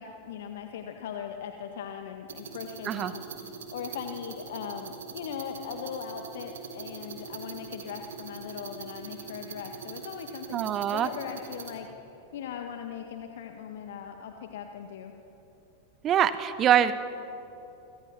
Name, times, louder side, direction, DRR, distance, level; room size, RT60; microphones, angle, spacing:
voice 1, 0.0-11.9 12.3-15.1, left 8 dB, 55° left, 5 dB, 1.7 m, -39 dB
sound 1, 2.3-11.7, right 6 dB, 65° right, 3.9 m, -42 dB
voice 2, 10.5-11.1 16.0-16.9, right 10 dB, 30° right, 13 dB, 1.1 m, -24 dB
29.5 x 26.0 x 6.0 m, 3.0 s
figure-of-eight pair, 90°, 0 cm